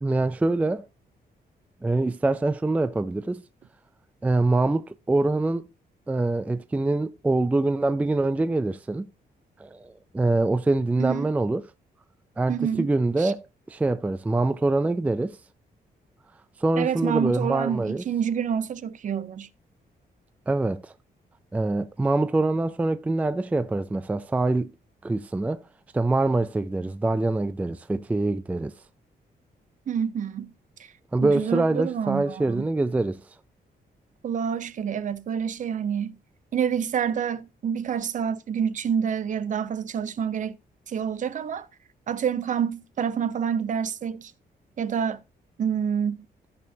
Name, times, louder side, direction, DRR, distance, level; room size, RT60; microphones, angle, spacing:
voice 1, 0.0-0.9 1.8-3.4 4.2-5.7 6.1-9.1 9.6-11.6 12.4-15.4 16.6-18.0 20.5-20.9 21.5-24.7 25.0-25.6 25.9-28.7 31.1-33.2, right 2 dB, 10° right, 0.4 m, -24 dB
voice 2, 11.0-11.3 12.5-12.9 13.2-13.3 16.8-19.5 29.9-30.5 31.2-32.7 34.2-36.2 36.5-40.6 40.9-41.7 42.1-44.3 44.8-45.2 45.6-46.2, right 8 dB, 50° right, 0.6 m, -27 dB
14.5 x 6.4 x 2.8 m
wide cardioid pair, 175°, 17 cm